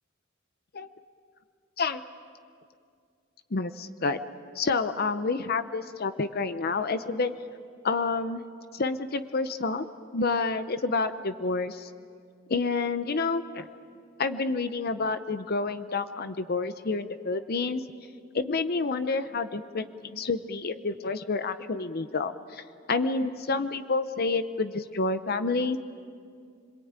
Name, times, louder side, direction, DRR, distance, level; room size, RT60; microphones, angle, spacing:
voice 1, 3.5-4.2 4.5-7.3 7.8-8.4 8.7-9.9 10.1-11.9 12.5-13.7 14.2-17.8 18.3-22.6 22.9-25.8, left 3 dB, 50° left, 11 dB, 0.8 m, -29 dB
26.5 x 22.5 x 8.9 m, 2.3 s
head